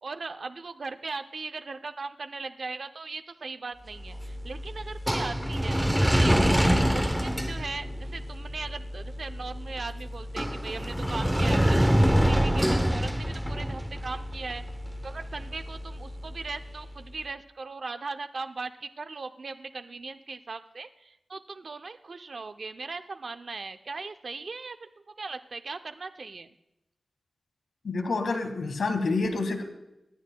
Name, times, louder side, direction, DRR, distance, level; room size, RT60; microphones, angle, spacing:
voice 1, 0.0-6.5 6.9-14.6 15.0-24.9 25.2-26.5, right 4 dB, 55° right, 9 dB, 0.6 m, -38 dB
sound 1, 3.9-17.0, equal, 5° right, 0.7 m, -27 dB
voice 2, 27.8-29.6, left 3 dB, 85° left, 6 dB, 1.4 m, -28 dB
24.5 x 10.0 x 2.2 m, 0.90 s
wide cardioid pair, 115°, 0 cm